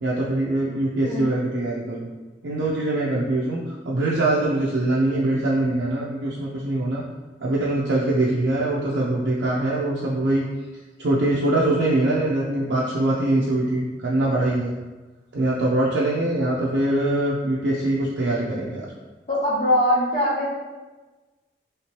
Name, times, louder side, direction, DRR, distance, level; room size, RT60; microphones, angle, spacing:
voice 1, 0.0-2.1 2.4-3.6 3.8-7.0 7.4-10.4 11.0-14.7 15.3-18.9, right 1 dB, 90° right, -6 dB, 0.5 m, -23 dB
voice 2, 19.3-20.5, left 1 dB, 40° left, -11 dB, 0.8 m, -21 dB
3.1 x 2.9 x 3.0 m, 1.2 s
head